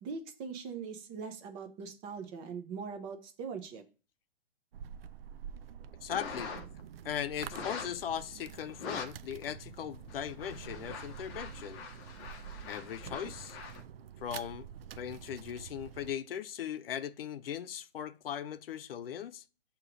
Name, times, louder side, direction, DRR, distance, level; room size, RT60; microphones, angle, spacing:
voice 1, 0.0-3.8, right 5 dB, 15° right, 0.5 m, -41 dB
sound 1, 4.7-16.1, right 8 dB, 65° right, 0.5 m, -47 dB
voice 2, 6.0-6.5 7.0-11.8 12.7-13.6 14.2-14.7 15.0-19.4, left 9 dB, 65° left, 0.6 m, -39 dB
sound 2, 6.1-6.8 7.5-8.0 8.7-9.1 9.4-9.5 10.0-13.8, left 5 dB, 25° left, 0.7 m, -44 dB
6.6 x 3.0 x 4.9 m
hypercardioid pair, 145°, 32 cm